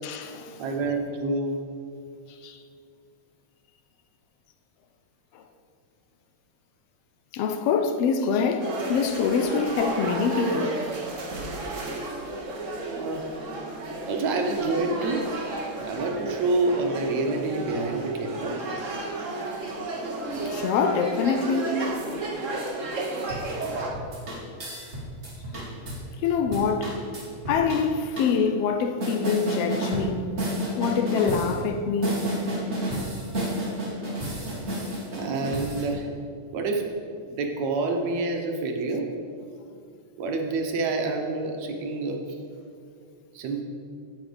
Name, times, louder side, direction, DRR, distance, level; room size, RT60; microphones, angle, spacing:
voice 1, 0.0-0.6 2.4-2.6 5.3-5.4 7.3-10.9 12.2-12.3 19.2-19.3 20.5-21.9 26.2-27.0 27.5-30.3 30.8-32.2, left 5 dB, 75° left, 1.5 m, -25 dB
voice 2, 0.6-1.6 12.9-13.3 14.1-15.3 15.9-18.6 21.7-22.0 35.2-36.1 36.5-36.9 37.2-39.1 40.2-42.2 43.3-43.6, right 3 dB, 70° right, 2.3 m, -27 dB
sound 1, 8.6-23.9, right 2 dB, 45° right, 1.0 m, -32 dB
sound 2, 23.2-26.0 26.4-27.8 28.2-28.3 29.0-30.1 30.4-31.6 32.0-35.8, right 1 dB, 25° right, 2.5 m, -31 dB
16.0 x 6.4 x 5.2 m
omnidirectional pair, 3.3 m